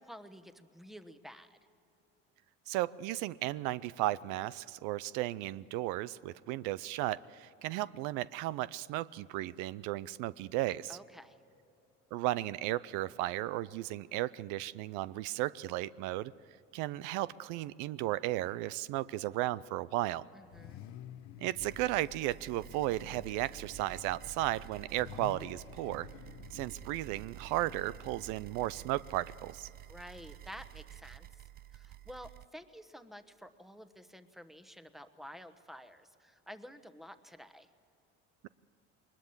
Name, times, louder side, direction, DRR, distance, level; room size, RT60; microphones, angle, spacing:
voice 1, 0.0-1.6 10.9-11.4 20.3-20.8 29.9-31.3 31.7-37.7, equal, ahead, 10 dB, 1.2 m, -51 dB
voice 2, 2.7-11.0 12.1-16.3 16.7-20.2 21.4-26.1 26.5-29.7, right 16 dB, 80° right, 18 dB, 0.5 m, -35 dB
Car / Idling / Accelerating revving vroom, 18.3-30.4, left 10 dB, 70° left, 1.0 m, -53 dB
sound 1, 21.6-32.5, right 13 dB, 30° right, 0.4 m, -51 dB
22.0 x 20.5 x 7.2 m, 2.8 s
supercardioid pair, 90°, 30 cm